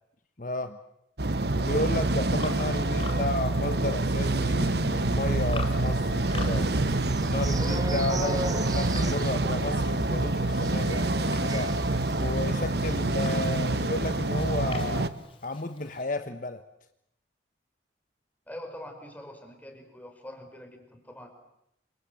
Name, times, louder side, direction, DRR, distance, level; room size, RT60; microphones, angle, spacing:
voice 1, 0.4-0.8 1.6-6.7 7.2-8.4 8.7-11.8 12.2-15.1 15.4-16.6, left 2 dB, 45° left, 8 dB, 1.2 m, -33 dB
sound 1, 1.2-15.1, right 2 dB, 55° right, 1.2 m, -27 dB
Livestock farm animals working animals, 2.4-16.0, left 3 dB, 30° left, 3.6 m, -46 dB
sound 2, 5.8-12.5 12.8-13.0 13.2-13.5, right 2 dB, 20° right, 1.8 m, -38 dB
voice 2, 8.2-8.7 18.5-21.3, equal, 10° left, 4 dB, 4.9 m, -43 dB
28.0 x 26.5 x 7.8 m, 0.78 s
head